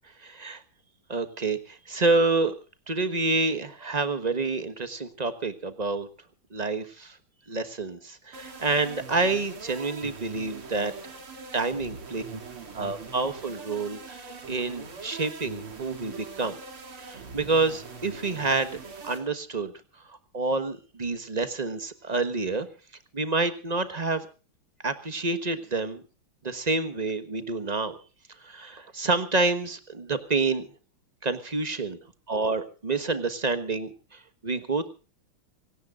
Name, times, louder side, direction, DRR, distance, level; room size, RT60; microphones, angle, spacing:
voice 1, 0.2-0.6 1.1-2.5 2.9-6.1 6.5-7.2 7.5-11.2 11.5-12.4 12.7-16.6 17.0-19.7 20.1-22.7 23.1-24.3 24.8-26.0 26.4-28.0 28.4-30.7 31.2-32.0 32.3-34.9, right 3 dB, 25° right, 11 dB, 1.1 m, -28 dB
sound 1, 8.3-19.2, right 4 dB, 90° right, 3.7 m, -42 dB
27.5 x 17.5 x 2.5 m, 0.34 s
omnidirectional pair, 2.3 m